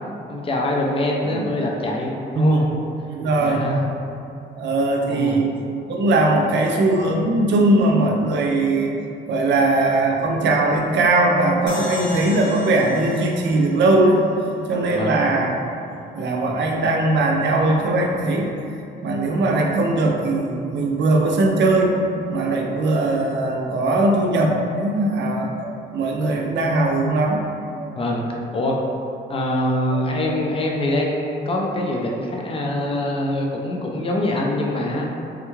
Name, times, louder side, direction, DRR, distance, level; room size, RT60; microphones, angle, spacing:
voice 1, 0.3-2.7 3.4-3.8 5.1-5.4 14.9-15.2 27.9-28.2 28.5-28.7 29.3-35.1, left 1 dB, 30° left, 0 dB, 0.5 m, -24 dB
voice 2, 2.3-2.7 3.1-3.6 4.6-5.5 5.9-8.9 9.3-14.2 14.7-15.6 16.2-18.5 19.0-22.0 22.3-25.5 25.9-27.4, right 2 dB, 65° right, 1 dB, 0.5 m, -19 dB
sound 1, 11.7-15.0, left 2 dB, 90° left, 0.6 m, -36 dB
sound 2, 25.6-25.8 26.7-26.9 27.8-27.9 28.8-29.0 29.9-30.1 31.0-31.1 32.1-32.2, right 4 dB, 20° right, 1.0 m, -36 dB
3.6 x 2.3 x 3.0 m, 2.6 s
cardioid pair, 90°, 20 cm